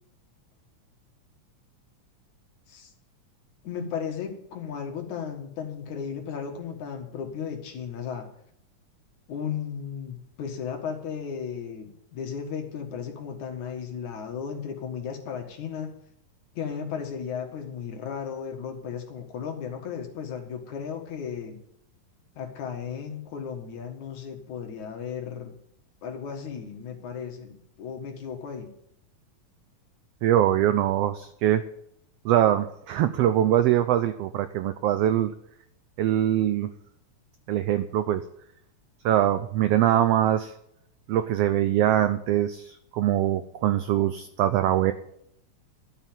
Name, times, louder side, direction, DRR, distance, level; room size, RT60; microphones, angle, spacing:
voice 1, 3.6-8.3 9.3-15.9 16.5-21.6 22.4-25.6 26.0-28.7, left 7 dB, 70° left, 3 dB, 3.0 m, -35 dB
voice 2, 30.2-31.6 32.2-35.3 36.0-36.7 37.5-38.2 39.0-40.5 41.1-44.9, right 12 dB, 90° right, 10 dB, 1.3 m, -23 dB
12.5 x 5.8 x 9.0 m, 0.73 s
omnidirectional pair, 3.5 m